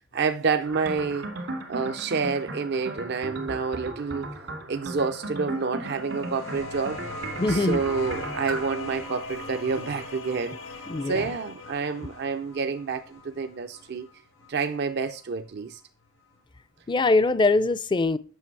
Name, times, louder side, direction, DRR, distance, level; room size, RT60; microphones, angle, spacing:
voice 1, 0.1-1.3 1.7-4.3 4.7-7.0 7.5-10.6 11.1-14.1 14.5-15.8, right 5 dB, 55° right, 0.5 m, -28 dB
sound 1, 0.6-8.8, right 2 dB, 75° right, 2.0 m, -36 dB
sound 2, 4.6-12.4, left 3 dB, 70° left, 0.8 m, -42 dB
sound 3, 6.0-15.2 16.4-16.5, left 1 dB, 85° left, 4.0 m, -42 dB
voice 2, 7.4-7.8 10.9-11.4 16.9-18.2, left 3 dB, 25° left, 0.4 m, -22 dB
8.4 x 6.0 x 4.6 m
head